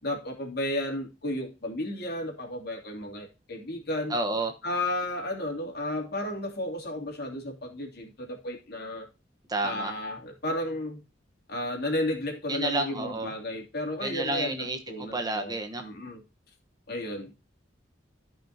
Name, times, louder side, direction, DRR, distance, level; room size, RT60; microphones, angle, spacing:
voice 1, 0.0-4.1 4.6-9.1 9.6-11.0 11.5-16.2 16.9-17.3, left 1 dB, 55° left, 2 dB, 2.9 m, -33 dB
voice 2, 4.1-4.5 9.5-9.9 12.5-13.3 14.0-15.9, right 2 dB, 20° right, 5 dB, 1.1 m, -30 dB
14.0 x 5.7 x 2.8 m, 0.29 s
head